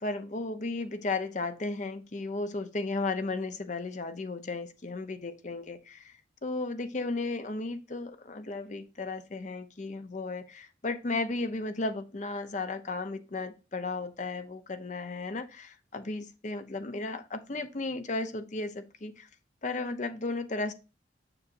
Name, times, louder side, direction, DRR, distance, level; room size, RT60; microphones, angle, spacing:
voice 1, 0.0-19.3 19.6-20.7, left 3 dB, 40° left, 0.7 m, -34 dB
6.8 x 6.0 x 2.6 m
head